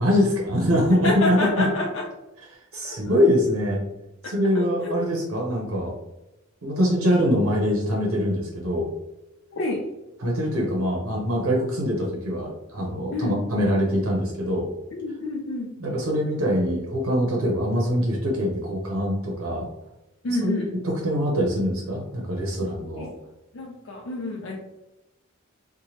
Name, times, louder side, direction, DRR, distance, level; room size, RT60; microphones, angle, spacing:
voice 1, 0.0-1.7 2.7-3.8 4.2-5.9 6.6-8.9 10.2-14.7 15.8-19.7 20.3-20.5 20.8-23.1, equal, 90° right, -1 dB, 0.6 m, -23 dB
voice 2, 1.0-2.1 2.8-3.0 4.2-5.0 9.5-9.8 13.1-13.4 14.9-15.7 20.2-20.7 22.8-23.1 23.5-24.6, left 2 dB, 60° left, -1 dB, 0.4 m, -28 dB
3.0 x 2.1 x 2.7 m, 0.96 s
head